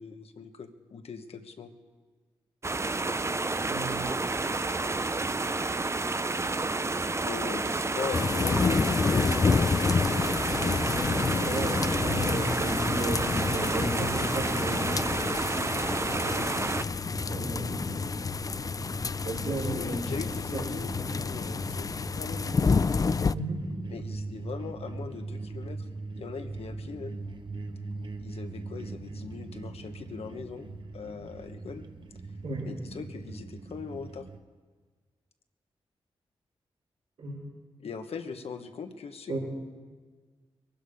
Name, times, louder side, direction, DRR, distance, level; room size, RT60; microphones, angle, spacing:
voice 1, 0.0-1.7 7.2-10.3 16.2-16.7 19.6-22.8 23.9-25.9 26.2-27.2 28.2-31.8 32.7-34.3 37.8-39.4, left 5 dB, 70° left, 7 dB, 1.3 m, -40 dB
sound 1, 2.6-16.8, right 3 dB, 25° right, 0.6 m, -30 dB
voice 2, 3.7-4.1 10.9-14.8 17.3-17.9 19.2-20.1 20.5-20.6 23.3-23.6 32.4-32.7 37.2-37.4 39.3-39.4, right 2 dB, 85° right, -6 dB, 5.3 m, -34 dB
sound 2, 8.1-23.3, left 4 dB, 35° left, 0.4 m, -29 dB
sound 3, 15.7-34.4, right 3 dB, 50° right, 1.2 m, -41 dB
22.5 x 12.0 x 5.2 m, 1.5 s
cardioid pair, 50°, 11 cm